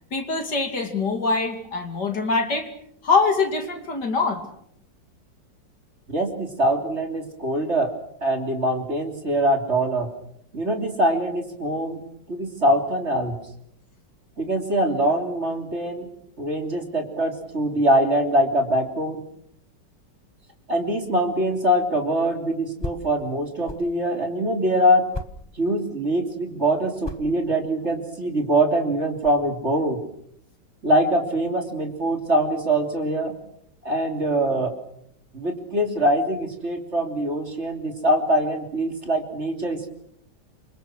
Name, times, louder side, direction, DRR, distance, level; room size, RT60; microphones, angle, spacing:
voice 1, 0.1-2.7 3.0-4.4, left 4 dB, 60° left, 6 dB, 3.3 m, -23 dB
voice 2, 6.1-7.9 8.2-10.1 10.5-12.0 12.3-13.4 14.4-16.1 16.4-19.2 20.7-25.1 25.6-30.0 30.8-33.3 33.8-34.7 35.3-39.9, right 1 dB, 35° right, 4 dB, 3.3 m, -23 dB
sound 1, 22.8-23.9 24.4-24.5 25.1-26.0 26.9-29.4, left 2 dB, 20° left, 0.8 m, -37 dB
27.5 x 25.5 x 6.3 m, 0.71 s
omnidirectional pair, 2.0 m